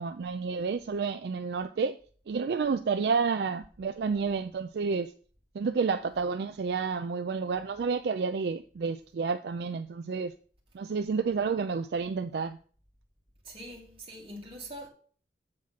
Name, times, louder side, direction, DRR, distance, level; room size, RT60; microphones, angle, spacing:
voice 1, 0.0-2.0 2.3-5.1 5.5-10.3 10.7-12.6, right 5 dB, 60° right, 0.3 m, -30 dB
voice 2, 13.4-14.9, right 1 dB, 30° right, 1.9 m, -43 dB
7.7 x 3.6 x 5.7 m
head